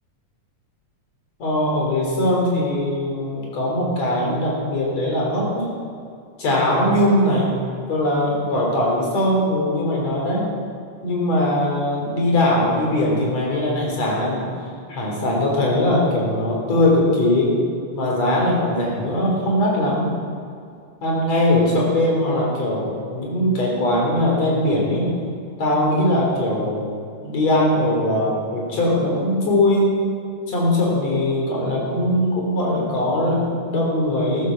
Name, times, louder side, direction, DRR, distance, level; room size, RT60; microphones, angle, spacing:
voice 1, 1.4-5.7 6.4-7.5 7.9-10.5 11.0-14.5 14.9-17.5 17.9-20.1 21.0-25.1 25.6-26.9 27.2-29.9 30.5-34.5, left 1 dB, 60° left, -2 dB, 4.8 m, -20 dB
15.0 x 10.5 x 7.1 m, 2.4 s
omnidirectional pair, 3.4 m